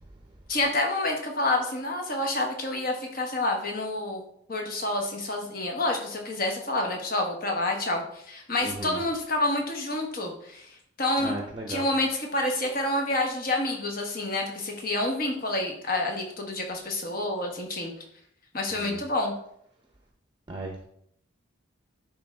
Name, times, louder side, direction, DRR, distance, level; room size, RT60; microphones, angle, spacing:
voice 1, 0.5-4.2 4.5-10.7 11.0-11.4 11.7-17.9 18.5-19.3, left 2 dB, 45° left, 2 dB, 1.2 m, -28 dB
voice 2, 8.6-9.0 11.2-11.9 18.8-19.0 20.5-20.8, right 2 dB, 25° right, 2 dB, 0.6 m, -35 dB
10.5 x 3.5 x 3.5 m, 0.70 s
head